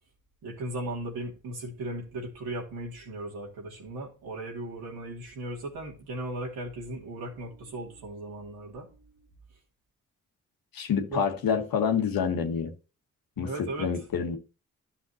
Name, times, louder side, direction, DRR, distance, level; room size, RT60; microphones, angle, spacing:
voice 1, 0.4-9.0 11.1-11.3 13.4-13.9, right 1 dB, 80° right, 2.7 m, -37 dB
voice 2, 10.7-12.7 13.4-14.4, left 7 dB, 70° left, 1.5 m, -27 dB
12.0 x 5.7 x 2.9 m
supercardioid pair, 40°, 36 cm